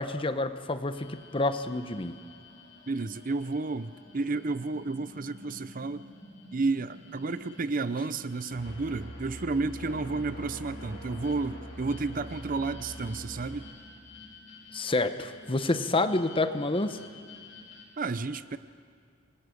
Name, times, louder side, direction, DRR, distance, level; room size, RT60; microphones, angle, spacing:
voice 1, 0.0-2.2 14.7-17.0, left 2 dB, 25° left, 10 dB, 0.9 m, -28 dB
sound 1, 0.9-17.8, left 3 dB, 80° left, 5.8 m, -51 dB
voice 2, 2.9-6.1 6.5-13.7 18.0-18.6, right 3 dB, 45° right, 14 dB, 0.6 m, -31 dB
sound 2, 8.5-13.6, equal, 65° left, 6.8 m, -43 dB
28.0 x 21.0 x 6.4 m, 2.2 s
head